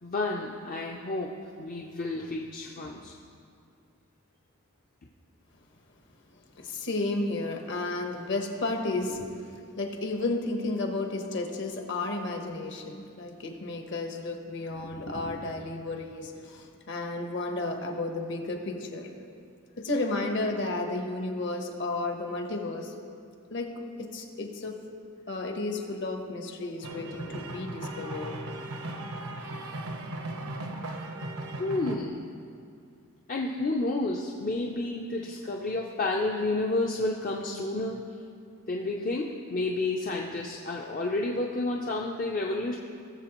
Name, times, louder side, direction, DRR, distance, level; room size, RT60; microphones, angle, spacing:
voice 1, 0.0-3.1 31.6-32.2 33.3-38.0 38.7-42.8, left 2 dB, 40° left, -1 dB, 0.5 m, -30 dB
voice 2, 6.6-19.1 19.8-22.9 23.5-23.7 24.0-24.7 25.3-28.3, left 2 dB, 55° left, 3 dB, 1.1 m, -32 dB
sound 1, 26.8-32.0, right 2 dB, 80° right, 0.9 m, -37 dB
18.0 x 7.2 x 3.0 m, 2.3 s
head